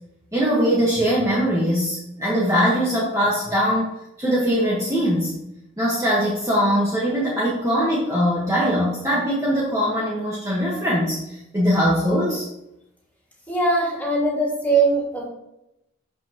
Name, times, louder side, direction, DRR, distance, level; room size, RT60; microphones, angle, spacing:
voice 1, 0.3-3.9 4.2-5.4 5.8-12.5, equal, 15° right, -6 dB, 1.4 m, -21 dB
voice 2, 13.5-15.2, right 3 dB, 10° left, -5 dB, 2.7 m, -21 dB
12.0 x 5.3 x 3.0 m, 0.87 s
head